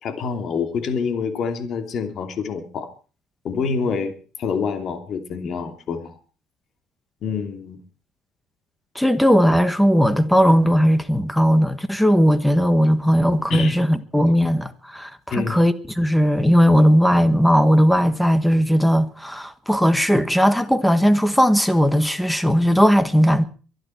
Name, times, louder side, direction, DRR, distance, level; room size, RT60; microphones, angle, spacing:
voice 1, 0.0-2.9 3.4-4.1 4.4-6.2 7.2-7.8 13.5-13.7 15.3-15.6, left 5 dB, 50° left, 2.8 m, -26 dB
voice 2, 8.9-23.4, equal, ahead, 1.4 m, -17 dB
24.0 x 11.0 x 4.6 m
cardioid pair, 130°, 0 cm